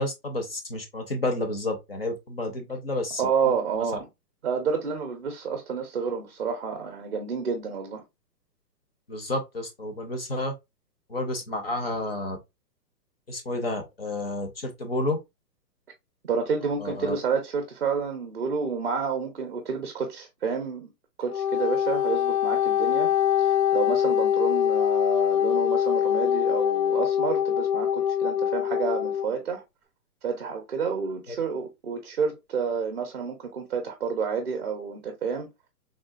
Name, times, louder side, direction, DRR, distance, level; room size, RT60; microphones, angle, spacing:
voice 1, 0.0-3.2 9.1-10.5 11.1-12.4 13.3-15.2 16.8-17.1 31.3-31.4, left 2 dB, 35° left, 0.6 m, -30 dB
voice 2, 3.2-4.1 4.4-8.0 16.2-20.9 21.2-23.1 23.4-29.6 30.2-35.5, right 5 dB, 40° right, 0.5 m, -29 dB
Wind instrument woodwind instrument, 21.2-29.3, left 10 dB, 75° left, 0.8 m, -24 dB
3.6 x 2.3 x 2.3 m
hypercardioid pair, 170°, 50 cm